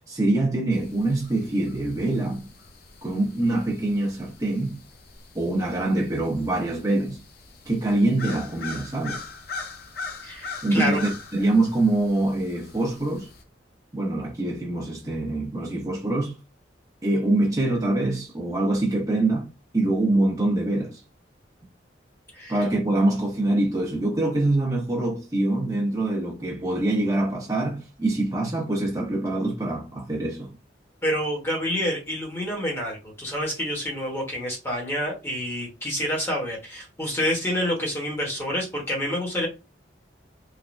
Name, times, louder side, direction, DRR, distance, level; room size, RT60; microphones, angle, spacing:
voice 1, 0.1-2.5 3.0-4.8 5.3-7.2 7.7-9.2 10.6-13.3 13.9-16.3 17.0-19.5 19.7-21.0 22.5-30.5, right 2 dB, 20° right, 0.8 m, -24 dB
sound 1, 0.7-13.4, left 4 dB, 55° left, 0.6 m, -42 dB
voice 2, 10.2-11.0 22.3-22.6 31.0-39.5, equal, 15° left, 1.0 m, -28 dB
3.2 x 2.1 x 2.5 m
head